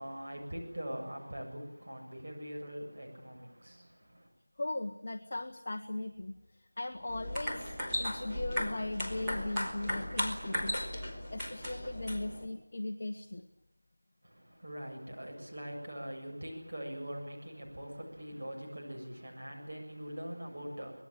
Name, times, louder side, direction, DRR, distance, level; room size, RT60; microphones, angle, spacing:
voice 1, 0.0-4.3 14.2-21.0, equal, 40° right, 1 dB, 7.5 m, -43 dB
voice 2, 4.6-10.9 11.3-13.5, left 2 dB, 30° left, 4 dB, 1.1 m, -38 dB
sound 1, 7.1-12.5, left 1 dB, ahead, 2.5 m, -36 dB
25.0 x 20.5 x 9.0 m, 0.84 s
figure-of-eight pair, 175°, 0 cm